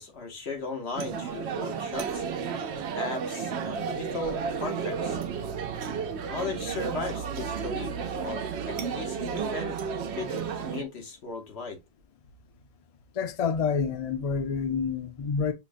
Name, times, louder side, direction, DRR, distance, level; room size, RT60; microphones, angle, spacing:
voice 1, 0.0-2.2 2.9-5.2 6.3-9.8 10.1-11.8, left 3 dB, 85° left, 1.2 m, -37 dB
sound 1, 0.9-10.8, right 6 dB, 80° right, 0.8 m, -32 dB
voice 2, 13.1-15.5, left 6 dB, 45° left, 0.5 m, -28 dB
5.6 x 2.1 x 2.4 m
omnidirectional pair, 1.1 m